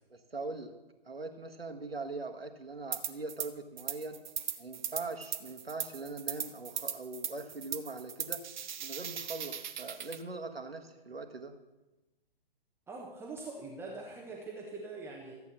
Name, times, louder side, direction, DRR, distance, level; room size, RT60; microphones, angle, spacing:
voice 1, 0.3-0.7 1.0-4.2 4.6-8.4 8.8-11.5, right 3 dB, 85° right, 6 dB, 1.5 m, -41 dB
sound 1, 2.9-3.5 3.8-10.2, right 8 dB, 50° right, 1.0 m, -38 dB
voice 2, 12.9-15.4, right 3 dB, 10° right, -2 dB, 1.2 m, -43 dB
14.0 x 8.5 x 6.0 m, 1.1 s
figure-of-eight pair, 125°, 29 cm